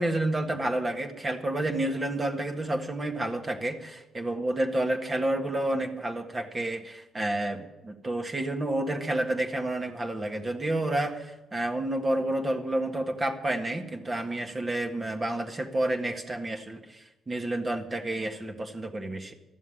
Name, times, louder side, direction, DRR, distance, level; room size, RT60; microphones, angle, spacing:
voice 1, 0.0-19.3, right 1 dB, 25° right, 5 dB, 1.7 m, -30 dB
13.5 x 7.3 x 9.8 m, 1.0 s
cardioid pair, 90°, 0 cm